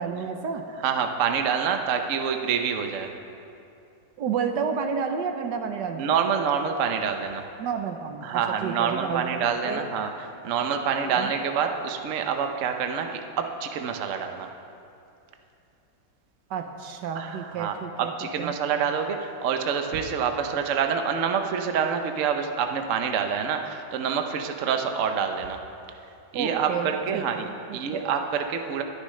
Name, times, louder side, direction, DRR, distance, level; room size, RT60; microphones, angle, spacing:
voice 1, 0.0-0.6 4.2-6.1 7.6-9.9 11.0-11.3 16.5-18.1 18.4-18.6 26.3-28.1, right 6 dB, 75° right, 6 dB, 1.4 m, -31 dB
voice 2, 0.8-3.1 6.0-7.4 8.2-14.5 17.2-25.6 26.3-27.5 27.7-28.8, right 7 dB, 55° right, 5 dB, 0.9 m, -27 dB
21.0 x 10.0 x 3.2 m, 2.7 s
omnidirectional pair, 1.9 m